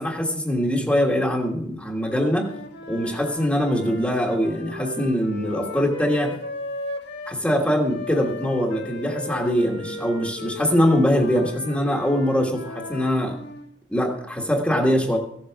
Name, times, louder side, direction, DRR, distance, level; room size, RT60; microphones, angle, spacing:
voice 1, 0.0-2.5 2.9-6.4 7.3-13.4 13.9-15.2, equal, 5° left, 0 dB, 1.5 m, -22 dB
Wind instrument woodwind instrument, 1.9-7.4 7.9-13.7, left 3 dB, 65° left, 1.8 m, -36 dB
15.0 x 7.9 x 5.9 m, 0.70 s
head